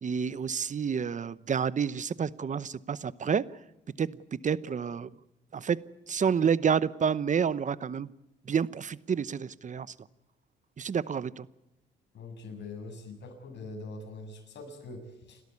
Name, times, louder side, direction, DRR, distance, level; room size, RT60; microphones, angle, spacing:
voice 1, 0.0-3.4 4.0-5.1 5.5-5.8 6.1-8.1 8.4-9.9 10.8-11.5, right 7 dB, 40° right, 18 dB, 0.9 m, -29 dB
voice 2, 12.1-15.4, left 3 dB, 60° left, 4 dB, 7.2 m, -43 dB
29.5 x 13.5 x 9.7 m, 0.96 s
cardioid pair, 90°, 20 cm